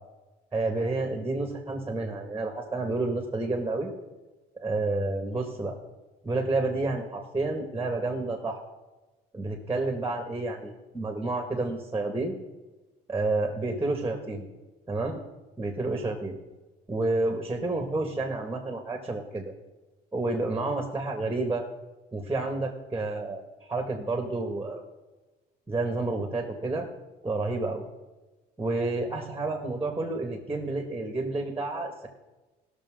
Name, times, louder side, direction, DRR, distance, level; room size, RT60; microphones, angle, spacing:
voice 1, 0.5-3.9 4.6-5.7 6.2-8.6 9.3-12.4 13.1-14.5 14.9-15.2 15.6-16.3 16.9-19.5 20.1-21.6 22.1-24.8 25.7-26.9 27.2-27.9 28.6-32.1, right 2 dB, 10° right, 3 dB, 1.9 m, -30 dB
20.0 x 6.7 x 3.8 m, 1.1 s
cardioid pair, 110°, 17 cm